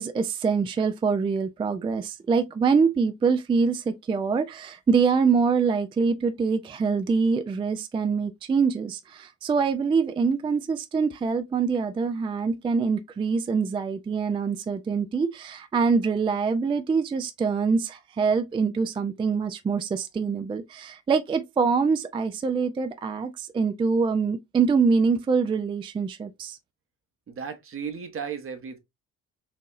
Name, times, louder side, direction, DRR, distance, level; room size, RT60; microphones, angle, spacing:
voice 1, 0.0-26.6, right 5 dB, 15° right, 0.3 m, -24 dB
voice 2, 27.3-28.8, right 6 dB, 40° right, 0.9 m, -35 dB
4.0 x 2.7 x 2.5 m
hypercardioid pair, 45°, 35 cm